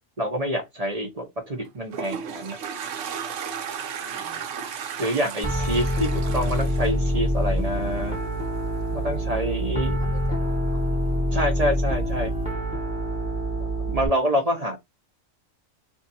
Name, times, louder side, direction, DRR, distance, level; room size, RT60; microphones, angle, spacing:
voice 1, 0.2-2.6 5.0-8.2 8.9-10.2 11.3-12.3 13.9-14.8, equal, 35° right, 0.7 m, -27 dB
Toilet flush, 1.6-7.9, right 7 dB, 70° right, 1.0 m, -34 dB
voice 2, 4.0-4.4 5.3-5.6 5.9-6.3 9.9-10.8 14.4-14.5, left 3 dB, 55° left, 1.1 m, -47 dB
Piano, 5.4-14.1, equal, 5° right, 1.1 m, -26 dB
2.7 x 2.5 x 4.0 m
omnidirectional pair, 1.4 m